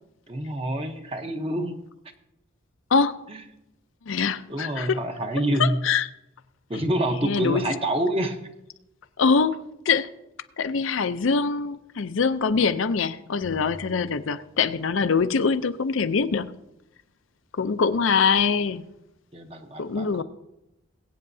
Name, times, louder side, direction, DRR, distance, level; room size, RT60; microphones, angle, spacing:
voice 1, 0.3-1.8 3.3-3.4 4.5-5.8 6.7-8.4 19.3-20.2, right 1 dB, 30° right, 0.9 m, -27 dB
voice 2, 4.1-5.0 5.6-6.1 7.2-7.7 9.2-9.6 9.9-10.1 10.6-16.5 17.5-18.8 19.8-20.2, left 5 dB, 70° left, 0.5 m, -23 dB
sound 1, 13.4-15.2, equal, 85° right, 2.1 m, -46 dB
21.5 x 8.5 x 2.7 m
head